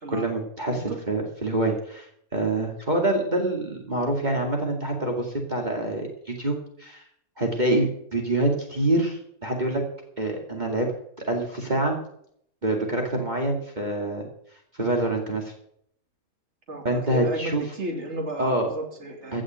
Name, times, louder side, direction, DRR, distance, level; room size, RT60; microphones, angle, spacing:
voice 1, 0.1-7.0 7.4-9.8 10.2-10.9 11.2-12.0 12.6-14.3 14.7-15.5 16.8-17.6 18.4-18.7 19.3-19.4, right 1 dB, 30° right, 1 dB, 2.5 m, -26 dB
voice 2, 16.7-19.4, right 1 dB, 45° right, 2 dB, 3.1 m, -33 dB
16.5 x 6.3 x 9.2 m, 0.68 s
omnidirectional pair, 1.6 m